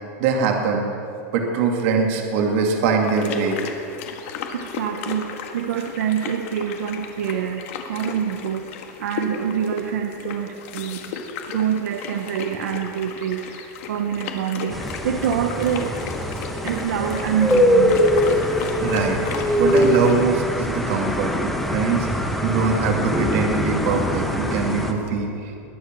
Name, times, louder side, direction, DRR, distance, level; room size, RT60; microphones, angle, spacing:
voice 1, 0.2-0.8 1.3-3.6 18.8-19.2 19.6-25.6, right 5 dB, 55° right, 2 dB, 2.3 m, -22 dB
sound 1, 3.0-20.1, left 6 dB, 55° left, 1.7 m, -35 dB
voice 2, 4.5-11.0 11.5-16.0 16.6-18.1, right 8 dB, 90° right, 5 dB, 0.9 m, -26 dB
sound 2, 14.7-24.9, left 1 dB, ahead, 1.0 m, -22 dB
20.5 x 10.0 x 6.1 m, 2.7 s
supercardioid pair, 165°, 9 cm